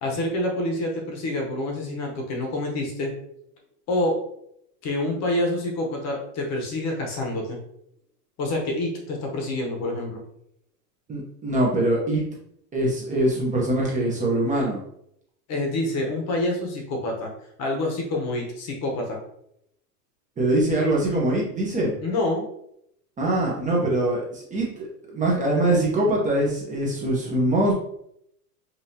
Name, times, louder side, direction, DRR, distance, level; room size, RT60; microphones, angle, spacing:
voice 1, 0.0-3.1 3.9-4.2 4.8-7.6 8.4-10.2 15.5-17.3 17.6-19.2 22.0-22.4, left 1 dB, 35° left, 1 dB, 1.0 m, -27 dB
voice 2, 11.1-12.2 12.7-14.8 20.4-21.9 23.2-24.9 25.1-27.7, right 1 dB, 15° right, -4 dB, 0.9 m, -23 dB
5.5 x 2.7 x 2.8 m, 0.74 s
supercardioid pair, 145°, 47 cm